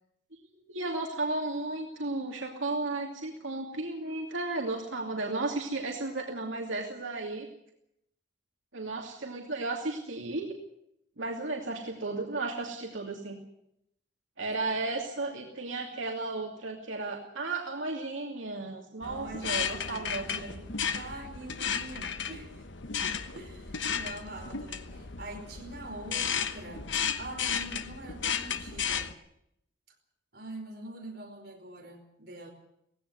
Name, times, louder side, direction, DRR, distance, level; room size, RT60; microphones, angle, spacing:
voice 1, 0.7-7.5 8.7-10.5 11.2-13.4 14.4-20.6, right 2 dB, 85° right, 1 dB, 2.6 m, -34 dB
sound 1, 19.0-29.1, left 7 dB, 75° left, 1.2 m, -34 dB
voice 2, 19.0-20.1 20.9-22.6 23.3-26.9 27.2-29.1 30.3-32.5, right 2 dB, 55° right, 1 dB, 4.9 m, -44 dB
17.5 x 16.0 x 9.7 m, 0.76 s
head